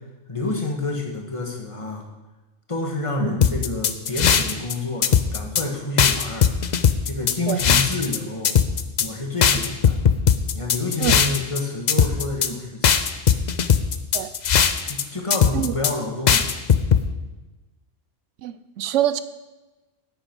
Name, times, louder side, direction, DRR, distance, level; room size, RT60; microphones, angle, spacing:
voice 1, 0.3-2.1 2.7-6.8 7.0-8.6 9.0-10.0 10.5-12.9 14.8-16.5, left 2 dB, 25° left, 1 dB, 1.6 m, -28 dB
sound 1, 3.4-4.7 5.0-5.6 6.0-8.2 8.4-9.1 9.4-11.6 11.9-12.5 12.8-15.0 15.3-15.9 16.3-17.0, left 7 dB, 50° left, 0.6 m, -18 dB
voice 2, 18.4-19.2, right 12 dB, 80° right, 13 dB, 0.9 m, -25 dB
9.8 x 9.0 x 5.3 m, 1.1 s
omnidirectional pair, 1.2 m